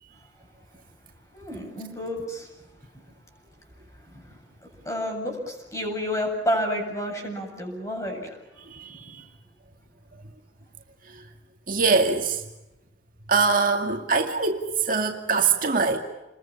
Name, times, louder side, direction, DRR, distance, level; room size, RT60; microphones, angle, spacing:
voice 1, 1.3-2.5 4.1-4.2 4.8-8.4, equal, 15° left, 2 dB, 7.8 m, -30 dB
voice 2, 8.7-9.2 11.7-12.4 13.3-16.0, right 4 dB, 45° right, 3 dB, 2.2 m, -23 dB
29.5 x 22.0 x 7.3 m, 0.98 s
head